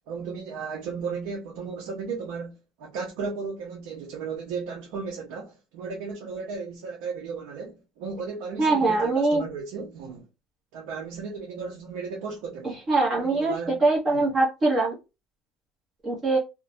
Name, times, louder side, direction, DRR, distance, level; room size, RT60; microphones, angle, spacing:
voice 1, 0.1-10.3 10.7-12.8 13.2-13.8 14.1-14.2, right 5 dB, 75° right, 0.6 m, -35 dB
voice 2, 8.6-9.4 12.9-15.0 16.0-16.4, right 3 dB, 25° right, 0.8 m, -22 dB
2.4 x 2.1 x 2.5 m
cardioid pair, 165°, 0 cm